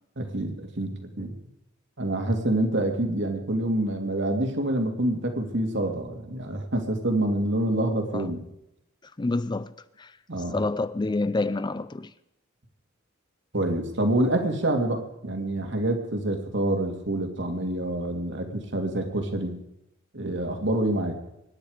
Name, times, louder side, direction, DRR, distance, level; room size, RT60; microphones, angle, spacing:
voice 1, 0.2-1.4 2.0-8.4 10.3-10.6 13.5-19.6 20.1-21.2, right 1 dB, 60° right, 2.5 m, -27 dB
voice 2, 9.0-10.2 10.5-12.1, left 2 dB, 20° left, 0.5 m, -28 dB
24.5 x 10.0 x 5.0 m
head